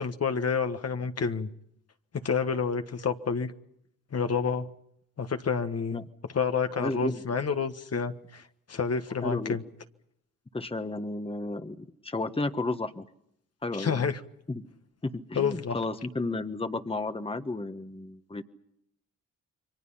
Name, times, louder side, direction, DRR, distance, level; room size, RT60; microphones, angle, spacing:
voice 1, 0.0-1.5 2.1-3.5 4.1-4.7 5.2-6.0 6.3-8.4 8.7-9.6 13.7-14.2 15.3-15.8, left 5 dB, 45° left, 1.5 m, -29 dB
voice 2, 6.8-7.2 9.2-9.6 10.5-13.0 13.6-14.1 14.5-14.6 15.0-18.4, left 2 dB, 15° left, 1.4 m, -33 dB
30.0 x 23.5 x 5.7 m
cardioid pair, 65°, 34 cm